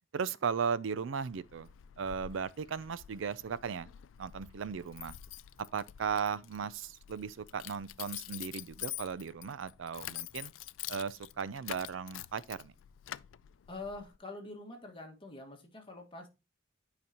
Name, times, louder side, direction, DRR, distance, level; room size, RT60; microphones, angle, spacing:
voice 1, 0.1-1.7 2.0-3.9 4.2-5.1 5.7-10.5 10.9-12.7, right 6 dB, 85° right, 0.4 m, -36 dB
Keys jangling, 1.1-14.2, left 14 dB, 85° left, 0.3 m, -47 dB
voice 2, 13.7-16.3, left 2 dB, 30° left, 1.7 m, -45 dB
9.5 x 5.1 x 2.9 m
head